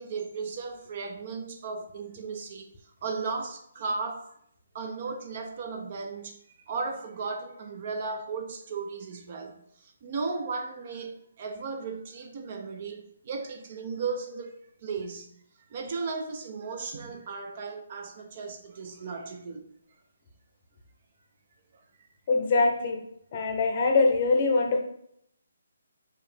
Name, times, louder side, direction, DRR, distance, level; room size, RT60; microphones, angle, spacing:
voice 1, 0.0-2.7 3.0-4.3 4.7-6.4 6.6-15.4 15.7-19.7 22.0-22.1, right 4 dB, 35° right, 0.4 m, -35 dB
voice 2, 22.3-23.0 23.3-24.8, left 3 dB, 30° left, 0.7 m, -23 dB
4.8 x 2.8 x 3.4 m
hypercardioid pair, 170°, 0 cm